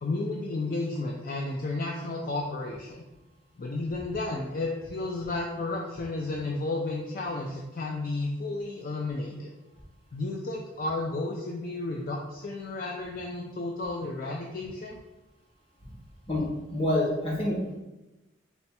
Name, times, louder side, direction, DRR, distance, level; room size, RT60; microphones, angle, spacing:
voice 1, 0.0-3.0 3.6-9.5 10.1-15.0, left 2 dB, 45° left, -1 dB, 0.4 m, -32 dB
voice 2, 16.3-17.8, left 1 dB, 30° left, -3 dB, 1.0 m, -27 dB
4.3 x 2.2 x 4.2 m, 1.0 s
head